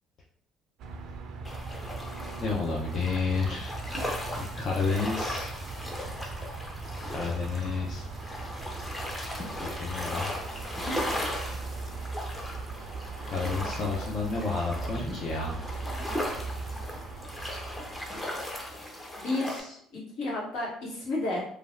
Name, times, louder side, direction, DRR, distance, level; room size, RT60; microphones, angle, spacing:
sound 1, 0.8-19.2, right 3 dB, 65° right, 0.4 m, -39 dB
sound 2, 1.4-19.6, left 1 dB, 15° left, 0.7 m, -37 dB
voice 1, 2.4-3.7 4.4-5.5 7.1-8.0 9.6-10.3 13.2-15.6, left 4 dB, 50° left, -3 dB, 0.6 m, -30 dB
voice 2, 19.2-21.4, left 2 dB, 75° left, -4 dB, 1.3 m, -32 dB
3.2 x 2.3 x 2.4 m, 0.65 s
supercardioid pair, 85°, 0 cm